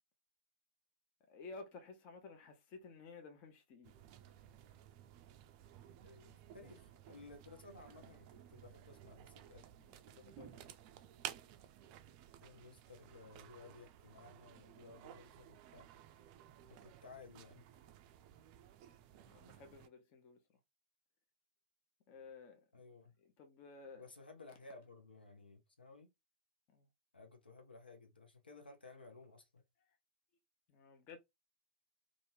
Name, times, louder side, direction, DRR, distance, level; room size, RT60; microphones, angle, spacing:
voice 1, 1.3-4.0 9.8-10.8 18.4-18.5 19.2-20.6 22.1-22.8 23.2-24.1 26.7-26.9 29.8-30.0 30.7-31.2, left 4 dB, 35° left, 0.6 m, -55 dB
sound 1, 3.8-19.9, right 11 dB, 40° right, 0.3 m, -55 dB
voice 2, 6.0-9.7 12.4-15.9 16.7-17.7 22.7-23.2 23.9-26.1 27.1-29.6, left 3 dB, 80° left, 0.8 m, -57 dB
2.5 x 2.5 x 3.3 m
figure-of-eight pair, 95°, 5 cm